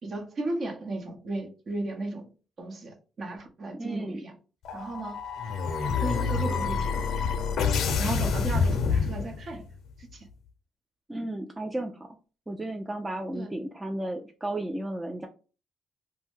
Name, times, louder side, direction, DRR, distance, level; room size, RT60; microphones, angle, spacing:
voice 1, 0.0-2.3 2.6-4.3 4.7-5.2 6.0-6.9 8.0-9.6 10.0-10.3 13.3-13.5, right 2 dB, 50° right, 0.9 m, -35 dB
voice 2, 3.7-4.2 11.1-12.1 12.5-15.3, right 1 dB, 15° right, 0.4 m, -34 dB
sound 1, 4.6-9.7, left 5 dB, 80° left, 0.5 m, -27 dB
2.6 x 2.2 x 3.6 m
cardioid pair, 90°, 0 cm